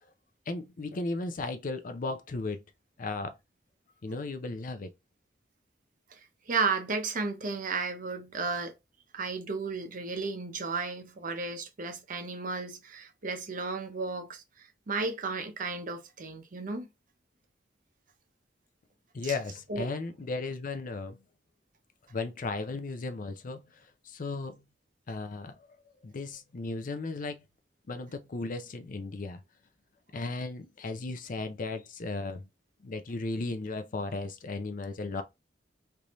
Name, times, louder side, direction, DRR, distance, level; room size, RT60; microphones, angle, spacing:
voice 1, 0.5-2.6 3.0-3.3 4.0-4.9 19.1-21.2 22.1-23.6 24.0-24.6 25.1-25.7 26.0-27.4 27.9-29.4 30.1-32.5 32.8-35.2, left 3 dB, 50° left, 0.5 m, -35 dB
voice 2, 6.5-8.7 9.1-16.9 19.2-19.3 19.7-19.9, right 4 dB, 50° right, 0.7 m, -33 dB
3.4 x 2.7 x 2.9 m
head